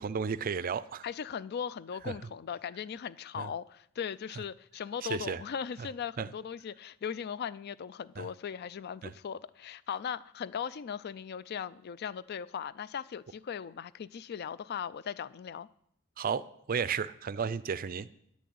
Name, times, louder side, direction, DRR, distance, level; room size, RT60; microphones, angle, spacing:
voice 1, 0.0-1.1 2.1-2.2 3.4-3.5 5.0-5.4 5.8-5.9 6.2-6.3 8.2-8.3 9.0-9.1 16.2-18.1, right 6 dB, 45° right, 0.4 m, -33 dB
voice 2, 1.0-15.7, left 7 dB, 50° left, 0.4 m, -38 dB
10.0 x 6.3 x 8.5 m
head